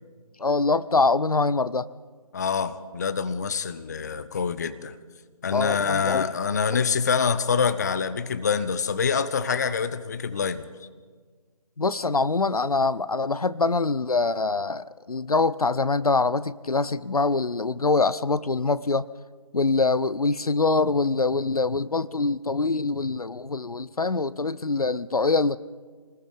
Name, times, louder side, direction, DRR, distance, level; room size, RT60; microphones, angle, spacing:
voice 1, 0.4-1.9 5.5-6.3 11.8-19.0 19.5-25.6, left 3 dB, 75° left, 17 dB, 0.7 m, -24 dB
voice 2, 2.3-4.9 5.4-10.7, left 6 dB, 30° left, 13 dB, 0.7 m, -26 dB
26.0 x 20.0 x 5.3 m, 1.5 s
figure-of-eight pair, 150°, 19 cm